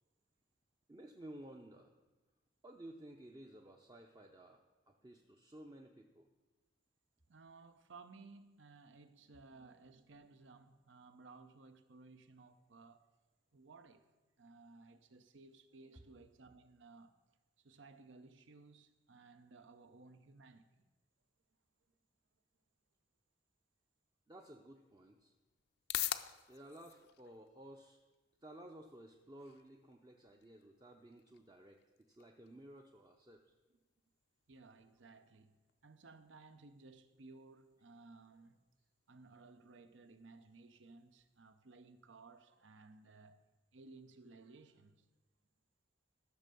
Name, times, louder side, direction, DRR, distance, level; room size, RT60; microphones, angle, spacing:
voice 1, 0.9-1.9 2.6-6.3 24.3-25.3 26.5-28.0 28.4-31.8 32.2-33.5, right 1 dB, 20° right, 0.6 m, -55 dB
voice 2, 7.3-13.1 13.5-14.0 14.4-17.2 17.6-20.9 34.5-38.6 39.1-43.4 43.7-45.1, right 3 dB, 75° right, 0.8 m, -59 dB
sound 1, 24.4-41.4, left 13 dB, 55° left, 0.5 m, -50 dB
12.5 x 6.6 x 6.9 m
head